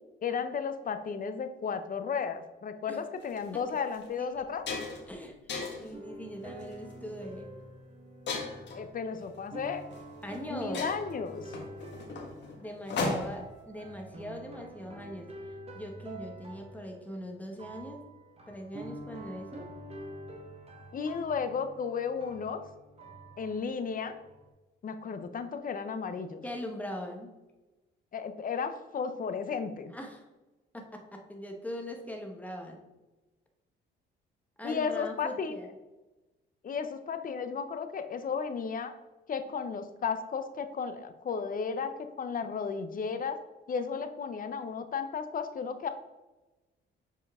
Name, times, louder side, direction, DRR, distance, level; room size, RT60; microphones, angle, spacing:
voice 1, 0.2-4.7 8.7-9.8 10.5-11.6 20.9-22.6 23.4-24.2 24.8-26.4 28.1-29.9 34.6-35.6 36.6-38.9 39.3-43.4 43.7-45.9, left 6 dB, 45° left, 9 dB, 0.7 m, -34 dB
sound 1, 3.2-3.4 3.9-4.1 4.4-5.1 5.5-5.9 6.6-6.9 8.3-8.8 9.9-10.0 10.3-10.4 10.7-13.5, left 3 dB, 60° left, 1.5 m, -35 dB
voice 2, 5.1-5.4 5.8-7.5 10.2-10.9 12.6-15.3 15.7-18.0 18.5-19.7 26.4-27.3 29.9-30.2 30.7-32.8 34.6-35.7, equal, 5° left, 2 dB, 1.2 m, -41 dB
sound 2, 5.9-24.5, right 1 dB, 30° right, 1.4 m, -47 dB
7.1 x 4.5 x 3.6 m, 1.1 s
cardioid pair, 90°, 20 cm